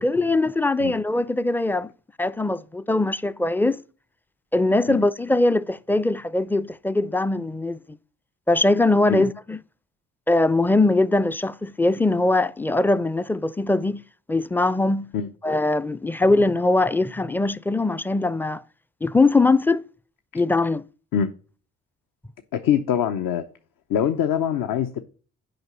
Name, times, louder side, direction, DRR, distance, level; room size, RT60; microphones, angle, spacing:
voice 1, 0.0-1.9 2.2-3.8 4.5-7.8 8.5-9.6 10.3-14.0 14.3-15.1 15.4-18.6 19.0-19.8 20.3-20.8, left 2 dB, 5° left, 0.4 m, -21 dB
voice 2, 22.5-23.4 23.9-25.0, left 9 dB, 60° left, 0.8 m, -23 dB
7.9 x 5.1 x 6.8 m
hypercardioid pair, 45°, 37 cm